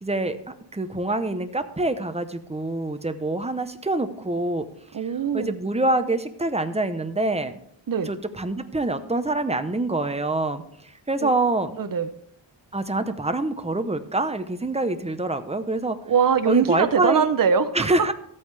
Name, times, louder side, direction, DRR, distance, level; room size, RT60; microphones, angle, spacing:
voice 1, 0.0-4.7 5.3-7.6 8.1-10.6 11.1-11.7 12.7-16.0 16.5-17.3 17.7-18.1, right 2 dB, 15° right, 9 dB, 0.8 m, -25 dB
voice 2, 4.9-5.6 7.9-8.1 11.2-11.3 11.8-12.1 16.1-18.1, right 6 dB, 45° right, 10 dB, 0.7 m, -22 dB
13.5 x 8.6 x 3.4 m, 0.69 s
wide cardioid pair, 105°, 45 cm